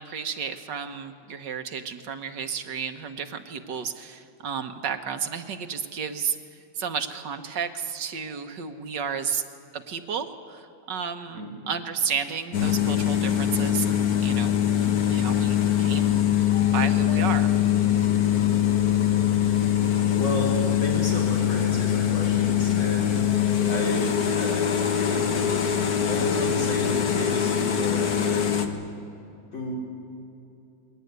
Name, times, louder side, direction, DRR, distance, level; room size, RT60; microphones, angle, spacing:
voice 1, 0.0-6.4 6.7-9.4 9.7-11.4 11.7-14.6 15.1-16.5 16.7-17.5, right 7 dB, 65° right, 8 dB, 1.7 m, -32 dB
sound 1, 12.5-28.7, left 10 dB, 55° left, 1.7 m, -23 dB
voice 2, 20.1-23.3 23.7-25.4 26.1-28.6 29.5-29.7, left 1 dB, 85° left, -3 dB, 5.4 m, -32 dB
22.0 x 18.0 x 9.5 m, 2.7 s
omnidirectional pair, 2.1 m